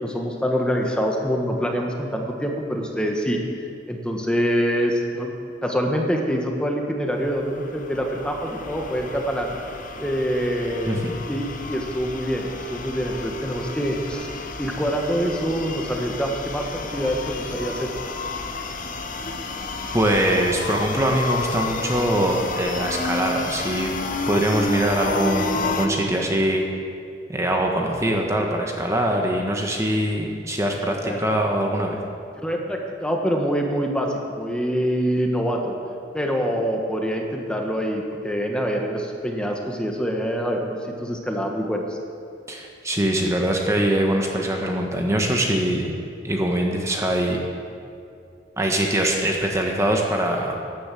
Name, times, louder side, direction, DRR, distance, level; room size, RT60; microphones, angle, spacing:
voice 1, 0.0-3.4 3.9-5.4 5.6-9.5 10.0-11.0 11.3-14.3 14.6-16.7 16.9-17.9 31.0-31.2 32.4-35.7 36.1-42.0, equal, 5° left, 1 dB, 1.3 m, -25 dB
sound 1, 7.1-25.9, left 3 dB, 45° left, 1.0 m, -31 dB
voice 2, 19.9-23.9 24.3-26.6 27.3-32.0 42.5-45.9 46.2-47.4 48.6-50.6, right 1 dB, 15° right, 1 dB, 1.2 m, -23 dB
12.5 x 10.5 x 7.7 m, 2.4 s
head